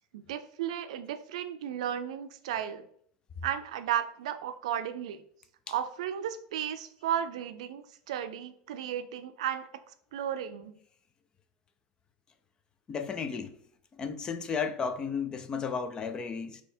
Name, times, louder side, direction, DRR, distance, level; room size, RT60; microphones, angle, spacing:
voice 1, 0.1-2.8 3.4-5.2 5.7-9.7 10.1-10.7, right 10 dB, 90° right, 0.5 m, -34 dB
voice 2, 12.9-13.5 14.0-16.6, left 6 dB, 25° left, 0.4 m, -33 dB
4.3 x 2.8 x 4.3 m
supercardioid pair, 135°, 3 cm